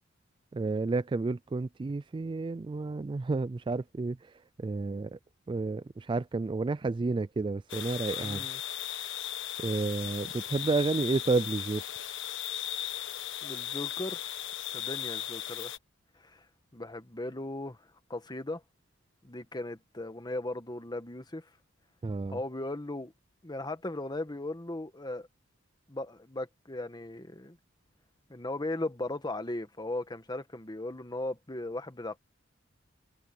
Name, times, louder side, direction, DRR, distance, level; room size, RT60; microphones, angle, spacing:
voice 1, 0.5-4.2 4.6-5.2 5.5-8.4 9.6-11.8 22.0-22.4, right 3 dB, 25° right, 0.3 m, -31 dB
sound 1, 7.7-15.8, left 11 dB, 65° left, 1.2 m, -37 dB
voice 2, 8.2-8.6 13.4-14.3 14.7-15.7 16.2-16.4 16.7-17.8 18.1-18.6 19.2-21.4 22.3-23.1 23.4-25.3 25.9-27.6 28.3-32.2, left 2 dB, 20° left, 1.4 m, -37 dB
head